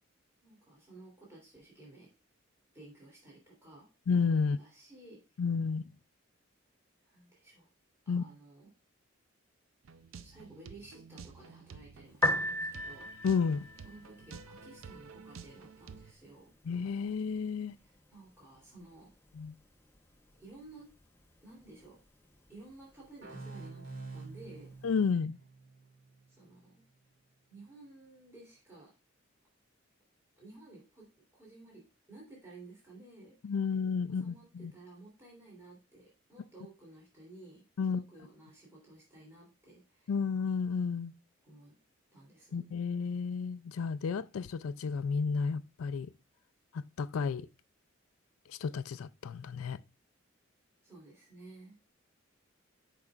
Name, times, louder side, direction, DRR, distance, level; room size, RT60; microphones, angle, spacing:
voice 1, 0.4-2.1 2.7-3.9 4.4-5.2 7.0-7.7 8.0-8.7 10.2-13.1 13.8-16.5 17.7-19.1 20.4-20.9 21.4-22.0 22.5-23.8 24.1-24.7 26.3-26.8 27.5-28.9 30.4-33.3 34.1-40.1 41.4-41.7 42.1-42.6 50.8-51.7, right 2 dB, 15° right, 2.9 m, -54 dB
voice 2, 4.1-4.6 5.4-5.9 8.1-8.2 13.2-13.7 16.7-17.7 19.4-19.5 24.8-25.4 33.4-34.7 37.8-38.0 40.1-41.1 42.5-46.1 47.0-47.5 48.5-49.8, left 5 dB, 90° left, 0.4 m, -31 dB
sound 1, 9.8-16.1, right 5 dB, 80° right, 0.5 m, -51 dB
Piano, 12.1-25.1, left 1 dB, 10° left, 0.8 m, -41 dB
sound 2, 23.2-26.7, right 3 dB, 60° right, 2.1 m, -47 dB
8.7 x 5.5 x 2.4 m
head